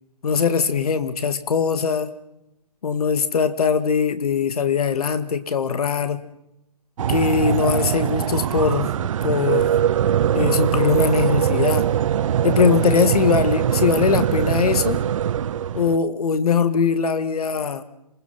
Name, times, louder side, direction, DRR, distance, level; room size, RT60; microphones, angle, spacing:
voice 1, 0.2-2.1 2.8-6.2 7.1-8.9 9.2-9.7 10.3-11.9 12.4-15.0 15.7-17.8, left 6 dB, 65° left, 11 dB, 2.2 m, -21 dB
sound 1, 7.0-16.0, right 10 dB, 50° right, 0.8 m, -22 dB
27.0 x 20.5 x 5.9 m, 0.85 s
figure-of-eight pair, 135°, 21 cm